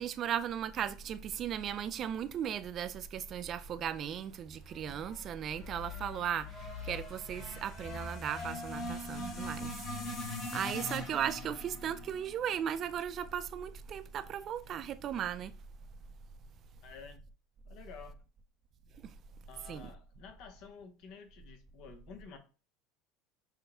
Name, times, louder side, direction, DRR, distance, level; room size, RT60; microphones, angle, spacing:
voice 1, 0.0-15.5 19.0-19.1 19.7-19.9, right 9 dB, 40° right, 0.3 m, -37 dB
sound 1, 4.7-13.0, left 1 dB, 35° left, 1.3 m, -42 dB
voice 2, 16.8-17.2 17.7-18.2 19.5-22.4, left 6 dB, 60° left, 0.9 m, -51 dB
5.9 x 2.2 x 3.4 m
supercardioid pair, 110°, 0 cm